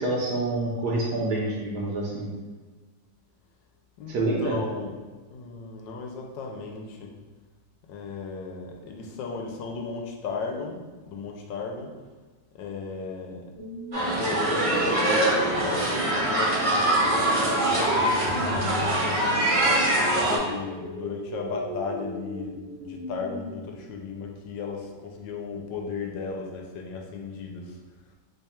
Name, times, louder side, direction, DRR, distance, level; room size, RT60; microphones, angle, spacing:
voice 1, 0.0-2.3 4.1-4.5, right 2 dB, 70° right, -3 dB, 1.0 m, -27 dB
voice 2, 4.0-5.0 5.3-7.1 7.9-11.9 12.5-13.5 14.2-19.5 20.3-27.8, left 4 dB, 80° left, 2 dB, 1.2 m, -35 dB
sound 1, 13.6-23.6, equal, 45° left, 1.2 m, -38 dB
sound 2, 13.9-20.4, right 1 dB, 45° right, 0.4 m, -23 dB
3.2 x 2.3 x 4.2 m, 1.3 s
omnidirectional pair, 2.1 m